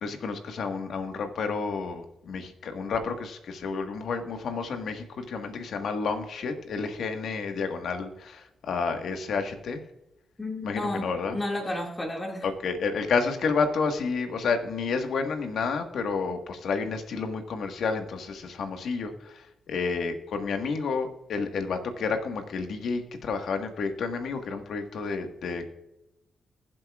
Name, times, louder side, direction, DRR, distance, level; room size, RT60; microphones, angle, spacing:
voice 1, 0.0-9.8 10.6-11.4 12.4-25.6, left 4 dB, 75° left, 6 dB, 1.5 m, -30 dB
voice 2, 10.4-12.5, left 1 dB, 20° left, 0 dB, 2.1 m, -32 dB
20.5 x 7.6 x 2.4 m, 0.93 s
cardioid pair, 85°, 0 cm